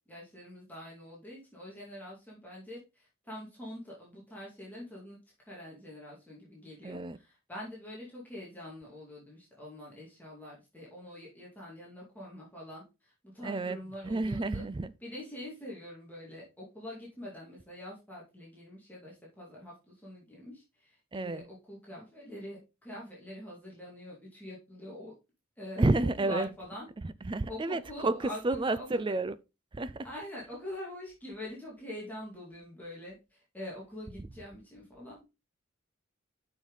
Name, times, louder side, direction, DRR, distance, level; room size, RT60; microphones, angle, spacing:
voice 1, 0.1-5.2 5.5-14.6 15.0-25.1 25.6-26.9 27.5-28.9 30.0-35.2, left 1 dB, 10° left, 2.3 m, -45 dB
voice 2, 6.8-7.2 13.4-14.9 21.1-21.4 25.8-26.5 27.0-29.4 29.7-30.1, right 2 dB, 25° right, 0.4 m, -30 dB
7.1 x 5.8 x 3.9 m
head